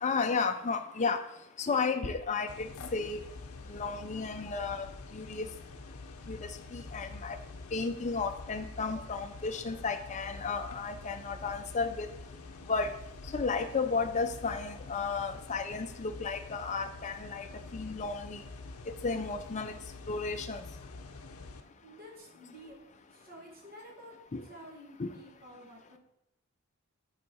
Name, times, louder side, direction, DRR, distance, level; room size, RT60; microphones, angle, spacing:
voice 1, 0.0-1.2 1.6-3.2 3.7-4.9 5.1-5.5 6.3-7.4 7.7-12.1 12.7-12.9 13.3-17.5 17.7-18.4 19.0-19.7 20.1-20.6 24.3-24.4 25.0-25.1, left 4 dB, 30° left, 7 dB, 0.5 m, -33 dB
sound 1, 2.5-21.6, left 3 dB, 75° left, 0.6 m, -47 dB
voice 2, 21.8-22.8 23.1-24.1 24.4-26.0, equal, 40° right, -1 dB, 1.5 m, -51 dB
7.6 x 4.6 x 4.2 m, 0.83 s
head